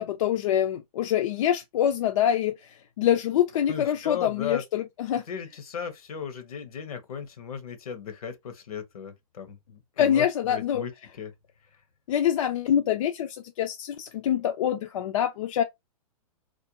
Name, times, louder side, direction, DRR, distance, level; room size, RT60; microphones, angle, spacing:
voice 1, 0.0-5.2 10.0-10.9 12.1-15.6, left 10 dB, 60° left, 0.4 m, -25 dB
voice 2, 3.7-4.6 5.3-10.9 11.2-11.3, left 7 dB, 75° left, 0.8 m, -36 dB
2.4 x 2.2 x 2.7 m
hypercardioid pair, 140°, 19 cm